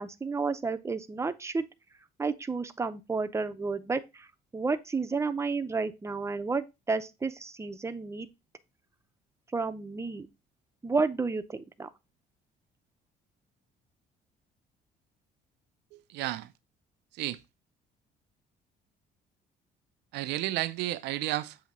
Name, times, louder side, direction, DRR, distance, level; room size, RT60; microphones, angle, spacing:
voice 1, 0.0-1.6 2.2-4.3 4.5-8.3 9.5-10.3 10.8-11.9, right 4 dB, 15° right, 0.6 m, -31 dB
voice 2, 15.9-16.5 17.2-17.4 20.1-21.6, right 16 dB, 85° right, 0.5 m, -32 dB
7.3 x 2.8 x 5.3 m
cardioid pair, 110°, 17 cm